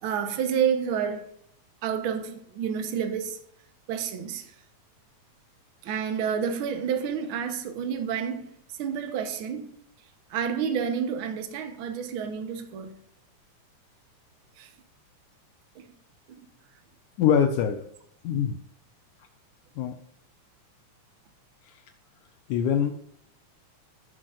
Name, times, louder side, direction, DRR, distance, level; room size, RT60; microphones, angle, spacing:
voice 1, 0.0-1.3 1.8-3.4 3.9-4.5 5.8-8.5 8.8-9.7 10.3-12.9 14.6-14.7 16.4-16.5, right 7 dB, 70° right, 1.3 m, -29 dB
voice 2, 17.2-17.9 18.2-18.6 19.8-20.0 21.6-21.8 22.5-22.9, left 8 dB, 80° left, 2.1 m, -23 dB
16.0 x 6.3 x 2.5 m
omnidirectional pair, 3.6 m